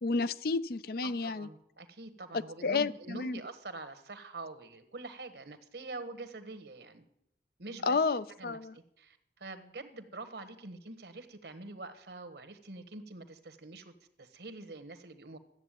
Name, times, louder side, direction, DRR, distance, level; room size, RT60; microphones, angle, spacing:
voice 1, 0.0-1.5 2.6-3.4 7.8-8.7, left 4 dB, 55° left, 16 dB, 0.5 m, -31 dB
voice 2, 1.0-7.0 7.6-8.0 8.4-15.4, right 2 dB, 70° right, 11 dB, 1.3 m, -45 dB
13.5 x 8.1 x 9.1 m, 0.79 s
head